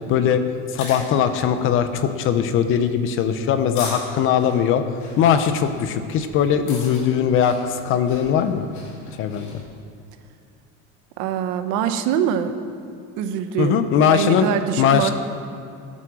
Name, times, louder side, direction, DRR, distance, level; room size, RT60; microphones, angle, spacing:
voice 1, 0.1-0.4 0.7-4.8 5.2-8.7 9.2-9.5 13.6-14.5 14.8-15.1, left 8 dB, 40° left, 10 dB, 0.7 m, -20 dB
sound 1, 0.6-9.6, left 3 dB, 65° left, 3.9 m, -40 dB
voice 2, 11.2-12.6 13.2-13.8 14.1-15.1, right 9 dB, 65° right, 9 dB, 0.9 m, -23 dB
14.5 x 8.4 x 6.2 m, 2.5 s
cardioid pair, 175°, 32 cm